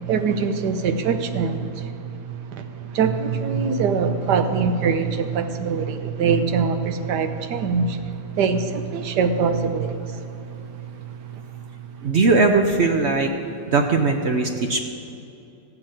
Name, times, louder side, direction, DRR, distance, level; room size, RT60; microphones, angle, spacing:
voice 1, 0.1-2.3 2.9-8.0 8.3-10.0, right 5 dB, 80° right, 1.4 m, -23 dB
voice 2, 12.0-13.3 13.7-14.8, right 3 dB, 55° right, 0.8 m, -19 dB
14.5 x 6.0 x 8.8 m
omnidirectional pair, 1.8 m